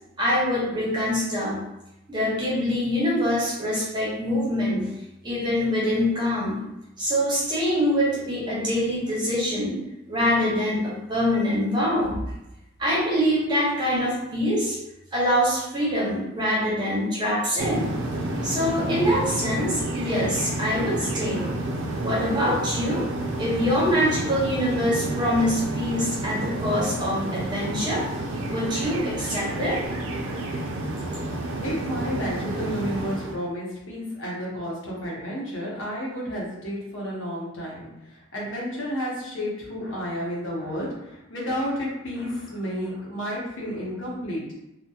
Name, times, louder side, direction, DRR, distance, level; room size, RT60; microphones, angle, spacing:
voice 1, 0.2-1.6 2.1-4.9 5.2-6.6 7.0-9.8 10.1-12.2 12.8-14.8 15.1-17.8 18.4-21.5 22.0-23.1 23.4-28.0 28.5-29.8, equal, 25° right, -7 dB, 0.8 m, -24 dB
sound 1, 17.6-33.4, right 2 dB, 80° right, 0.4 m, -30 dB
voice 2, 31.6-44.6, equal, 85° left, -4 dB, 0.8 m, -31 dB
2.7 x 2.1 x 2.3 m, 0.89 s
head